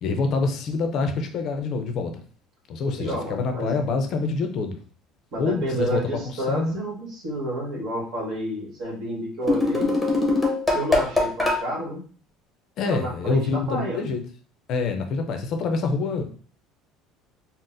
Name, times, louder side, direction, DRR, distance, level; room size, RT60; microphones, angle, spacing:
voice 1, 0.0-2.2 2.7-4.8 5.4-6.8 12.8-14.2 14.7-16.2, left 4 dB, 55° left, 6 dB, 0.5 m, -26 dB
voice 2, 3.0-3.8 5.3-10.0 10.7-12.0 12.8-14.0, right 1 dB, 60° right, -2 dB, 1.3 m, -30 dB
sound 1, 9.4-11.6, left 2 dB, 5° left, 0.8 m, -22 dB
3.9 x 2.0 x 2.5 m, 0.43 s
cardioid pair, 120°, 0 cm